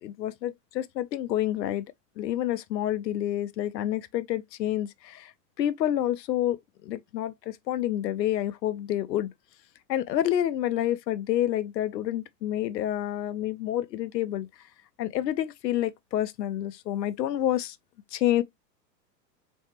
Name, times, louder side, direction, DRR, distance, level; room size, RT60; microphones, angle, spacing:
voice 1, 0.0-1.8 2.2-5.3 5.6-9.3 9.9-14.5 15.0-17.8 18.1-18.4, left 12 dB, 75° left, 0.8 m, -28 dB
4.4 x 3.2 x 2.9 m
hypercardioid pair, 115°, 50 cm